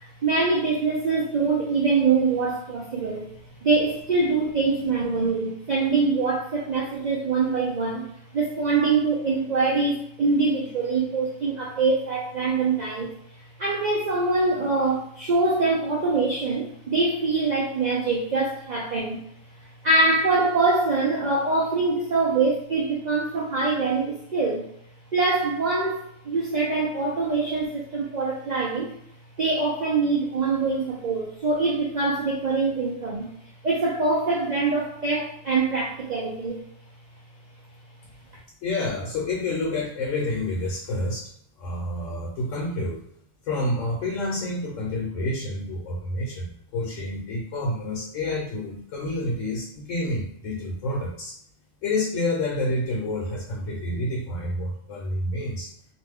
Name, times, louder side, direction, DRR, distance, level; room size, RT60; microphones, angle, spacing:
voice 1, 0.0-3.3 3.6-13.1 13.6-19.2 19.8-24.7 25.1-28.9 29.4-33.3 33.6-36.6, right 3 dB, 75° right, -2 dB, 0.4 m, -24 dB
voice 2, 38.6-41.3 41.6-43.0 43.4-51.3 51.8-55.7, left 1 dB, 80° left, -2 dB, 1.0 m, -28 dB
2.5 x 2.2 x 3.4 m, 0.72 s
omnidirectional pair, 1.3 m